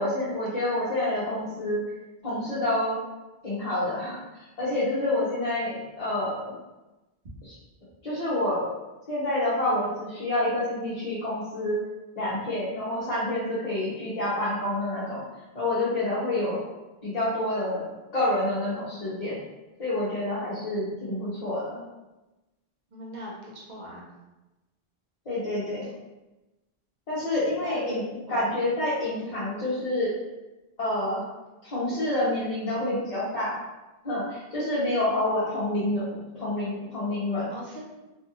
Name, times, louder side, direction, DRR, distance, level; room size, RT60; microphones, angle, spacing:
voice 1, 0.0-1.8 2.2-3.0 3.4-6.5 7.4-7.5 8.0-8.7 9.1-11.8 12.2-15.2 15.5-16.6 17.0-19.4 19.8-21.8 25.3-25.8 27.1-30.1 30.8-31.2 31.6-33.6 34.0-37.5, left 1 dB, 45° left, -11 dB, 0.8 m, -28 dB
voice 2, 22.9-24.0 25.8-25.9 27.6-28.0 28.3-28.5 37.5-37.8, equal, 50° right, -4 dB, 0.7 m, -41 dB
2.6 x 2.3 x 2.8 m, 1.1 s
omnidirectional pair, 1.0 m